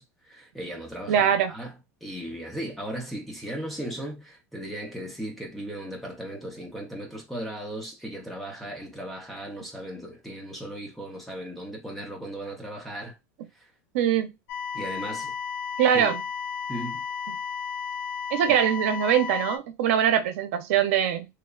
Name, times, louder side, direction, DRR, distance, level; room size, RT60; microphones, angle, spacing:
voice 1, 0.0-1.7 2.0-13.2 13.5-13.7 14.7-15.3 15.9-16.1 16.7-17.0, right 1 dB, ahead, 0.5 m, -37 dB
voice 2, 1.1-1.5 13.9-14.3 15.8-16.2 18.3-21.3, right 9 dB, 75° right, 0.6 m, -22 dB
sound 1, 14.5-19.6, left 6 dB, 80° left, 0.4 m, -33 dB
3.1 x 2.1 x 2.2 m
supercardioid pair, 180°, 7 cm